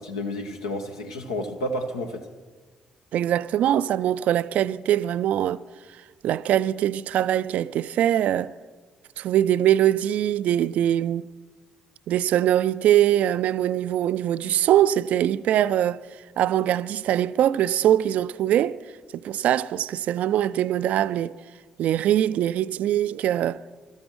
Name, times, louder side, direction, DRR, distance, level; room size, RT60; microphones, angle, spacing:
voice 1, 0.0-2.3, left 1 dB, 80° left, 0.9 m, -31 dB
voice 2, 3.1-5.6 6.2-8.5 9.2-11.3 12.1-16.0 16.4-18.8 19.1-21.4 21.8-23.6, right 11 dB, 55° right, 0.3 m, -22 dB
27.5 x 13.5 x 3.1 m
figure-of-eight pair, 40°, 3 cm